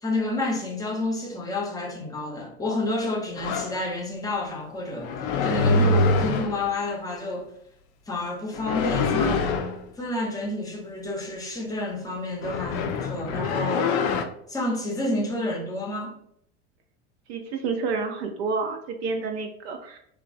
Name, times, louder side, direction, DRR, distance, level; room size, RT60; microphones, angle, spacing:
voice 1, 0.0-7.5 8.1-9.4 10.0-13.9 14.5-16.1, left 2 dB, 10° left, 0 dB, 0.6 m, -29 dB
sound 1, 3.4-3.7 5.0-6.7 8.5-9.8 12.4-14.2, left 3 dB, 55° left, 0.5 m, -24 dB
voice 2, 17.3-20.0, right 4 dB, 60° right, 5 dB, 0.4 m, -29 dB
3.0 x 2.1 x 2.5 m, 0.70 s
hypercardioid pair, 85°, 35 cm